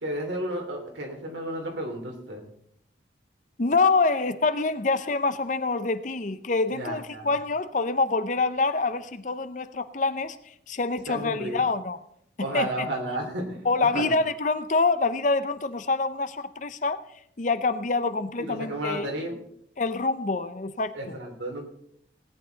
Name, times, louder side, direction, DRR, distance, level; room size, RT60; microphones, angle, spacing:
voice 1, 0.0-2.4 6.7-7.3 11.1-11.6 12.4-13.7 13.9-14.2 18.4-19.3 20.9-21.6, right 1 dB, 80° right, 2 dB, 2.9 m, -32 dB
voice 2, 3.6-12.0 12.5-12.9 13.6-17.0 17.4-19.0 19.8-21.2, left 3 dB, 40° left, 12 dB, 0.6 m, -26 dB
18.0 x 9.2 x 3.9 m, 0.70 s
head